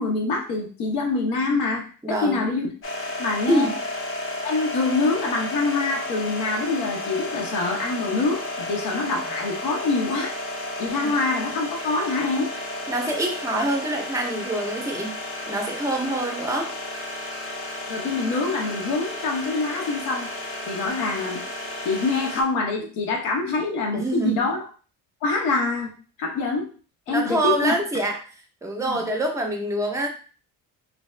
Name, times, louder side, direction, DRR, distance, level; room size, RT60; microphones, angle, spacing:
voice 1, 0.0-2.7 3.2-3.7 4.4-10.4 10.8-12.5 17.9-20.3 20.7-21.4 21.8-24.6 25.2-25.9 26.2-26.7 27.1-27.8 28.8-29.0, left 3 dB, 75° left, 0 dB, 0.9 m, -25 dB
voice 2, 2.0-2.4 3.5-3.8 11.0-11.1 12.9-15.2 15.5-16.7 23.9-24.5 27.1-28.2 28.6-30.1, right 1 dB, 10° right, 2 dB, 0.5 m, -25 dB
sound 1, 2.8-22.4, left 1 dB, 40° left, 0.6 m, -32 dB
2.7 x 2.2 x 3.2 m, 0.38 s
cardioid pair, 135°, 34 cm